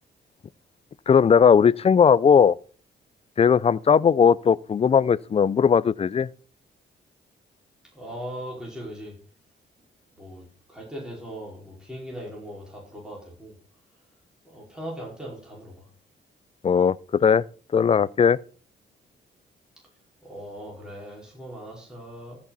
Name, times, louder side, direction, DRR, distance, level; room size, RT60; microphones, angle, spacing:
voice 1, 1.1-2.6 3.4-6.3 16.6-17.4 17.7-18.4, left 7 dB, 30° left, 0.4 m, -18 dB
voice 2, 7.9-9.1 10.1-13.5 14.4-15.9 20.2-22.4, equal, 5° right, 4.8 m, -39 dB
15.0 x 6.2 x 4.1 m
cardioid pair, 90°, 20 cm